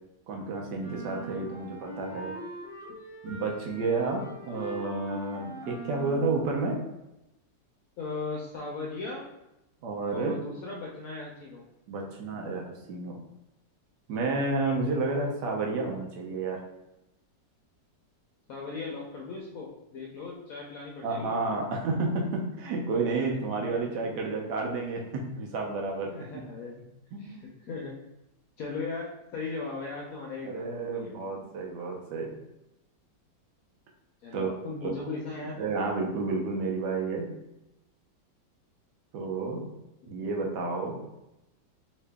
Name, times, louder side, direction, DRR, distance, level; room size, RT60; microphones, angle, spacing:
voice 1, 0.3-2.3 3.2-6.8 9.8-10.4 11.9-13.2 14.1-16.6 21.0-26.4 27.1-27.4 30.4-32.3 34.3-34.5 35.6-37.3 39.1-39.6 40.1-41.2, right 3 dB, 75° right, 1 dB, 1.2 m, -31 dB
sound 1, 0.8-6.5, right 2 dB, 10° right, 1.1 m, -42 dB
voice 2, 8.0-9.2 10.1-11.6 18.5-21.5 26.1-26.7 27.2-28.0 28.6-31.1 34.2-35.6, left 3 dB, 70° left, -1 dB, 0.8 m, -37 dB
3.0 x 2.8 x 3.3 m, 0.90 s
omnidirectional pair, 1.9 m